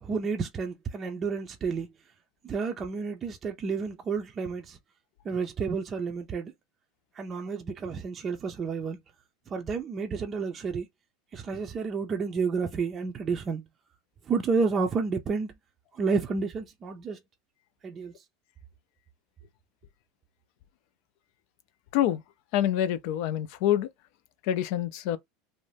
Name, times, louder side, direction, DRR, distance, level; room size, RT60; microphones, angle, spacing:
voice 1, 0.0-1.9 2.4-4.8 5.2-6.5 7.1-9.0 9.5-10.9 11.3-13.6 14.3-15.5 15.9-17.2 17.8-18.2, right 5 dB, 30° right, 0.4 m, -30 dB
voice 2, 22.5-23.9 24.4-25.2, left 11 dB, 65° left, 0.4 m, -26 dB
2.6 x 2.1 x 3.3 m
supercardioid pair, 110°, 0 cm